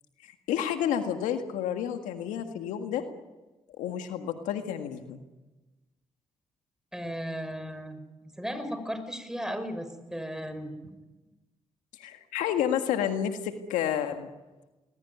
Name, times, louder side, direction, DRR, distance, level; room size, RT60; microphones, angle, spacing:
voice 1, 0.2-3.0 3.8-5.2 12.0-14.3, left 9 dB, 85° left, 6 dB, 1.8 m, -30 dB
voice 2, 6.9-8.0 8.4-11.0, equal, 5° right, 10 dB, 5.5 m, -35 dB
23.5 x 20.5 x 9.6 m, 1.1 s
supercardioid pair, 50°, 13 cm